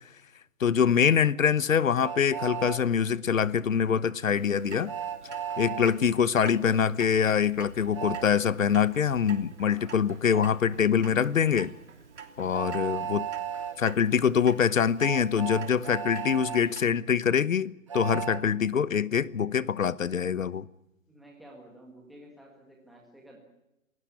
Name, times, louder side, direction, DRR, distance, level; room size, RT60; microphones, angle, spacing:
voice 1, 0.6-4.9 5.6-11.7 12.4-13.3 13.8-20.7, left 7 dB, 65° left, 1.0 m, -24 dB
Train, 2.0-2.8 4.9-5.9 7.9-8.3 10.3-10.5 12.5-13.8 15.0-16.6 17.9-18.4, right 8 dB, 20° right, 1.0 m, -34 dB
Clock, 4.3-16.8, right 6 dB, 55° right, 3.1 m, -48 dB
voice 2, 9.6-10.0 12.4-12.8 21.1-23.4, right 1 dB, ahead, 1.6 m, -52 dB
27.0 x 16.5 x 8.4 m
hypercardioid pair, 175°, 42 cm